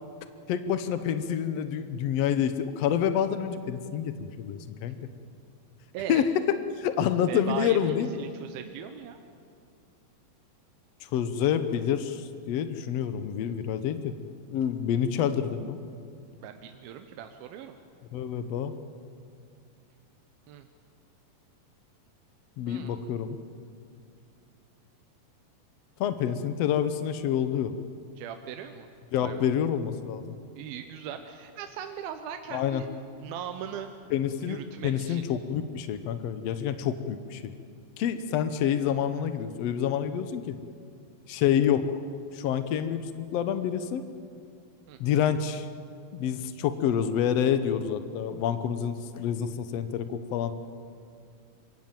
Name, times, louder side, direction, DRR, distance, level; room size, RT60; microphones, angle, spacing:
voice 1, 0.5-4.9 6.1-6.2 6.8-8.1 11.1-14.1 14.5-15.8 18.1-18.7 22.6-23.4 26.0-27.7 29.1-30.3 32.5-32.8 34.1-34.6 34.8-37.4 38.0-40.6 41.3-42.0 42.3-44.0 45.0-45.7 46.1-50.5, left 9 dB, 80° left, 10 dB, 1.4 m, -28 dB
voice 2, 5.9-6.3 7.3-9.2 16.4-17.8 20.5-20.7 22.7-23.0 28.2-28.9 29.2-29.5 30.6-32.9 33.2-33.9 34.4-35.2 44.9-45.0, right 9 dB, 80° right, 6 dB, 2.8 m, -39 dB
26.5 x 23.0 x 7.5 m, 2.5 s
omnidirectional pair, 4.3 m